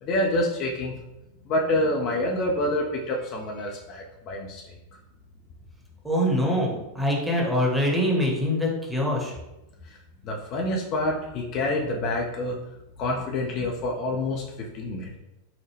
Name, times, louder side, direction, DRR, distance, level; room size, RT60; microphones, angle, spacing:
voice 1, 0.0-0.9 1.5-4.6 10.2-12.6 13.0-14.4 14.7-15.2, left 1 dB, 40° left, -1 dB, 0.5 m, -27 dB
voice 2, 6.0-9.4, equal, 5° right, -2 dB, 1.0 m, -24 dB
4.7 x 2.1 x 3.3 m, 0.96 s
figure-of-eight pair, 90°, 0 cm